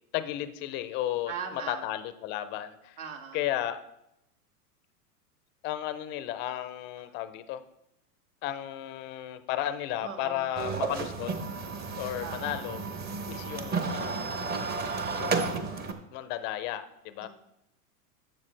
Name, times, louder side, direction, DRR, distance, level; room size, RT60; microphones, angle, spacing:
voice 1, 0.1-3.0 3.3-3.9 5.6-7.6 8.4-11.3 12.0-12.8 13.3-14.2 15.1-15.7 16.1-17.3, left 12 dB, 25° left, 12 dB, 0.4 m, -34 dB
voice 2, 1.3-1.9 3.0-3.5 10.0-10.5 12.2-12.7 17.2-17.3, right 6 dB, 65° right, 2 dB, 2.1 m, -39 dB
sound 1, 10.6-15.9, right 4 dB, 20° right, 0.8 m, -32 dB
12.0 x 7.3 x 3.2 m, 0.81 s
hypercardioid pair, 120°, 46 cm